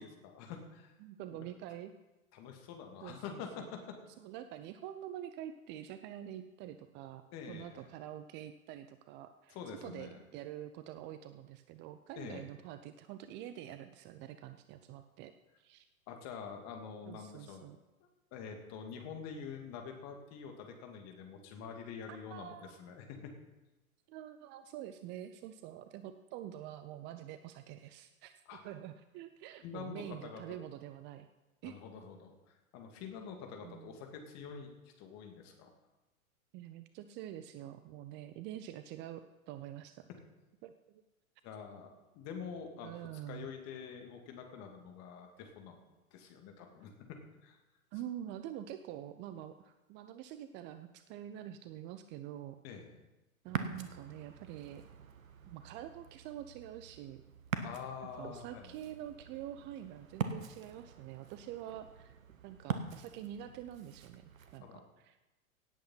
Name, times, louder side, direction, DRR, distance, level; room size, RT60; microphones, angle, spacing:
voice 1, 0.0-0.9 1.3-1.5 2.3-4.0 7.3-7.9 9.5-10.2 12.2-12.5 16.1-17.6 18.0-23.3 28.5-28.6 29.6-30.4 31.6-34.7 35.0-35.7 41.4-41.9 42.1-45.8 46.1-47.6 52.6-53.0 57.6-58.7 64.6-64.8, left 6 dB, 40° left, 4 dB, 2.8 m, -46 dB
voice 2, 1.0-1.9 3.0-3.7 4.2-15.3 15.6-15.9 17.1-17.8 22.1-22.8 24.1-28.3 28.6-31.3 31.6-31.8 33.6-34.1 36.5-40.1 40.6-41.0 42.8-43.5 47.9-52.6 53.4-54.8 55.4-57.2 58.2-62.2 62.4-65.2, right 11 dB, 25° right, 10 dB, 0.6 m, -46 dB
Ocean, 53.4-64.6, right 6 dB, 70° right, 1.5 m, -44 dB
17.5 x 8.6 x 5.8 m, 1.1 s
figure-of-eight pair, 100°, 42 cm